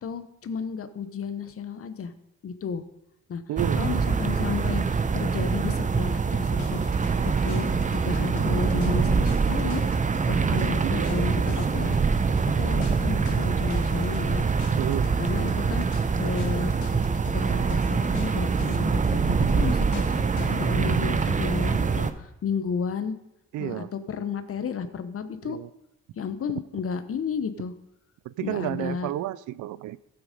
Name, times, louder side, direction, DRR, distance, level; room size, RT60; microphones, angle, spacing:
voice 1, 0.0-2.1 2.4-2.8 3.3-3.4 3.8-6.8 7.2-9.8 10.3-12.0 12.6-14.4 15.2-15.9 16.2-16.7 17.3-19.2 19.5-23.2 23.6-25.6 26.1-27.7 28.4-29.1, left 6 dB, 50° left, 11 dB, 1.0 m, -32 dB
voice 2, 3.5-4.0 10.5-11.3 14.8-15.1 15.4-15.5 23.5-23.9 25.4-25.7 28.2-30.0, right 14 dB, 75° right, 19 dB, 0.5 m, -32 dB
sound 1, 3.6-22.1, right 5 dB, 25° right, 0.7 m, -24 dB
sound 2, 6.6-20.8, left 9 dB, 75° left, 1.0 m, -45 dB
15.0 x 6.0 x 5.3 m, 0.89 s
cardioid pair, 90°, 30 cm